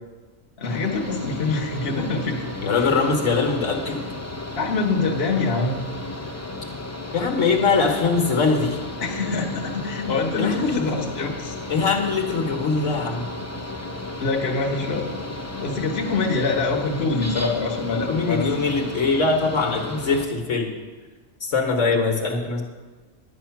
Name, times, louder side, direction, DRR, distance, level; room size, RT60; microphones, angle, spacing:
voice 1, 0.6-2.4 4.6-5.8 9.0-11.5 14.2-15.1 15.6-18.7, left 3 dB, 50° left, -1 dB, 1.4 m, -25 dB
Mechanical fan, 0.6-20.3, left 2 dB, 15° left, 0.7 m, -34 dB
voice 2, 2.6-4.0 7.1-8.8 10.4-11.0 11.7-13.3 17.9-20.8 21.4-22.6, left 4 dB, 65° left, 3 dB, 1.6 m, -22 dB
10.5 x 9.5 x 5.8 m, 1.3 s
omnidirectional pair, 1.4 m